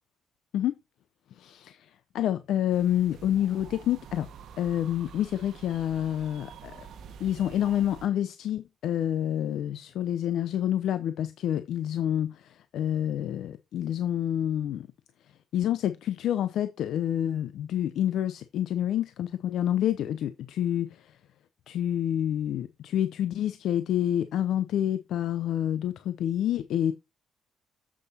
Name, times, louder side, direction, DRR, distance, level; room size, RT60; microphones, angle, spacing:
voice 1, 1.3-4.3 4.6-6.9 7.2-14.9 15.5-21.2 21.7-26.9, left 11 dB, 75° left, 0.6 m, -28 dB
sound 1, 2.7-8.1, right 7 dB, 70° right, 1.1 m, -47 dB
7.6 x 6.8 x 4.2 m
cardioid pair, 90°, 0 cm